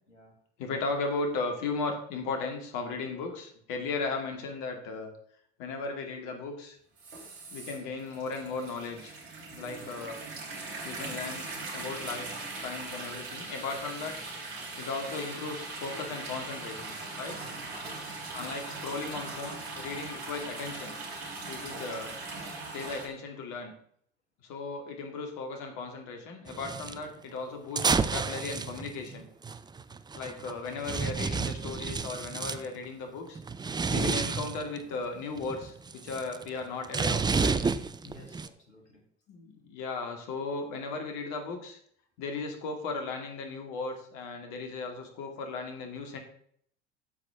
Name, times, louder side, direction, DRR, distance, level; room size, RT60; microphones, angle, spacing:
voice 1, 0.1-0.4 3.3-3.4 9.5-9.9 14.4-14.5 16.9-17.0 17.3-18.3 21.7-21.9 38.0-39.0, left 2 dB, 90° left, 1 dB, 2.1 m, -54 dB
voice 2, 0.6-5.1 5.6-6.8 7.5-9.1 9.6-10.2 10.8-14.2 14.8-17.4 18.3-20.9 21.5-22.2 22.7-23.7 24.4-29.3 30.1-33.4 33.9-37.6 39.3-41.8 42.2-46.2, left 3 dB, 55° left, 3 dB, 2.4 m, -36 dB
sound 1, 7.0-23.1, right 3 dB, 60° right, 3.8 m, -40 dB
sound 2, 26.5-27.0 27.8-32.7 33.4-34.8 35.2-38.5, right 4 dB, 10° right, 0.5 m, -31 dB
12.5 x 8.0 x 3.6 m, 0.64 s
figure-of-eight pair, 65°, 35 cm